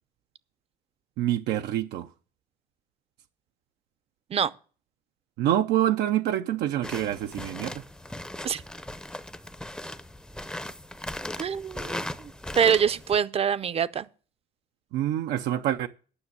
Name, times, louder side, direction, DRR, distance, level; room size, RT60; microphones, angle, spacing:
voice 1, 1.2-2.1 5.4-7.8 14.9-15.9, right 12 dB, 85° right, 0.6 m, -26 dB
sound 1, 6.8-13.2, left 1 dB, 5° left, 0.6 m, -38 dB
voice 2, 11.4-12.1 12.6-14.1, right 8 dB, 35° right, 0.6 m, -24 dB
10.0 x 6.0 x 7.9 m
cardioid pair, 110°, 17 cm